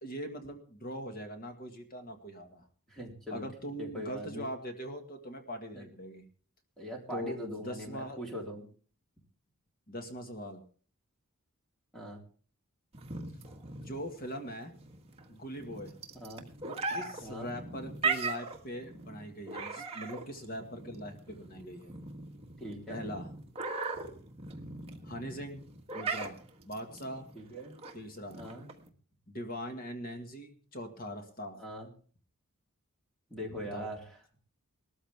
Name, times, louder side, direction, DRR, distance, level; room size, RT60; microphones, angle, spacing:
voice 1, 0.0-2.6 3.3-6.2 7.1-8.2 9.9-10.6 13.8-14.7 15.3-15.9 16.6-21.9 22.9-23.3 25.0-25.6 25.9-26.4 26.6-27.3 27.9-28.4 29.3-31.6 33.6-33.9, equal, 40° left, 6 dB, 1.9 m, -41 dB
voice 2, 2.9-3.4 3.8-4.5 5.7-5.8 6.8-8.7 11.9-12.2 16.2-16.5 16.9-17.5 22.6-23.0 27.3-27.7 28.4-28.7 31.6-31.9 33.3-34.0, equal, ahead, -1 dB, 3.7 m, -41 dB
sound 1, 12.9-28.9, right 4 dB, 25° right, 1.6 m, -39 dB
19.0 x 13.5 x 3.6 m, 0.42 s
head